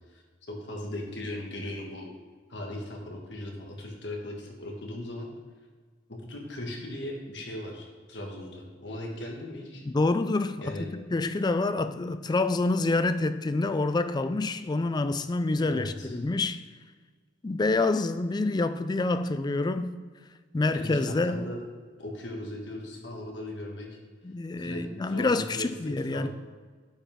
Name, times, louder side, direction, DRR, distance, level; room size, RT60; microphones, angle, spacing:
voice 1, 0.5-2.1 2.5-5.3 6.1-9.8 10.6-10.9 15.6-16.2 20.7-21.6 22.0-24.0 24.6-25.7 26.1-26.3, left 1 dB, 70° left, 1.7 m, -38 dB
voice 2, 9.8-16.6 17.4-20.0 20.5-21.5 24.2-26.3, left 2 dB, 25° left, 0.3 m, -27 dB
9.8 x 5.7 x 3.6 m
head